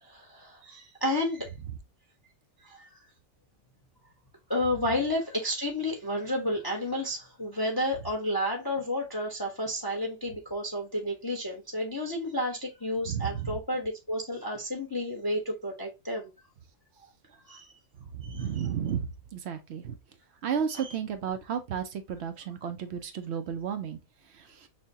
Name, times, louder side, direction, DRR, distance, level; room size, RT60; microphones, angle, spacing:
voice 1, 0.0-1.5 2.6-2.9 4.5-16.3 17.5-17.7 18.3-18.5 20.7-21.0, left 1 dB, 20° left, 0.6 m, -31 dB
voice 2, 13.1-13.5 18.1-20.0 20.4-24.0 24.3-24.7, right 8 dB, 65° right, 0.7 m, -33 dB
6.0 x 2.1 x 2.7 m
omnidirectional pair, 1.6 m